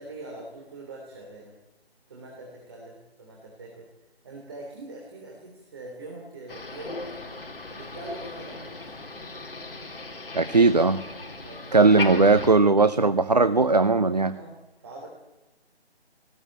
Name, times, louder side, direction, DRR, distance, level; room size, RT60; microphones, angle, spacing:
voice 1, 0.0-1.5 2.1-3.9 4.2-7.0 7.7-8.9 10.4-10.7 11.4-12.1 14.3-14.5 14.8-15.1, right 2 dB, 25° right, -1 dB, 3.4 m, -42 dB
Motor vehicle (road), 6.5-12.5, left 3 dB, 55° left, 3.0 m, -37 dB
voice 2, 10.3-11.0 11.7-14.4, right 3 dB, 40° right, 14 dB, 0.6 m, -19 dB
18.5 x 16.5 x 8.9 m, 1.1 s
figure-of-eight pair, 170°, 33 cm